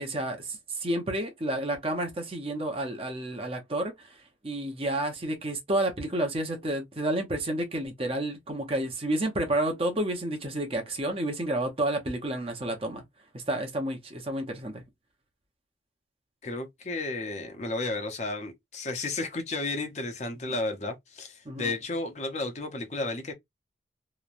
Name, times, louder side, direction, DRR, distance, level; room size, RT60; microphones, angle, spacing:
voice 1, 0.0-13.0 13.3-14.8 20.5-20.6 21.4-21.7, right 1 dB, 30° right, 0.7 m, -30 dB
voice 2, 16.4-23.3, left 2 dB, 35° left, 0.6 m, -33 dB
3.0 x 2.1 x 2.4 m
head